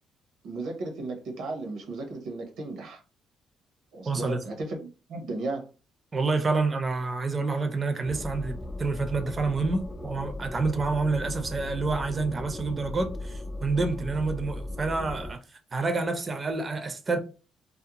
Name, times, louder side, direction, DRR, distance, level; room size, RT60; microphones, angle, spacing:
voice 1, 0.4-3.0 3.9-5.7, right 2 dB, 80° right, 0.8 m, -35 dB
voice 2, 4.1-4.4 6.1-15.4 15.7-17.2, right 3 dB, 35° right, 0.5 m, -28 dB
sound 1, 8.0-15.3, left 1 dB, 25° left, 0.3 m, -37 dB
2.5 x 2.1 x 2.8 m
cardioid pair, 90°, 0 cm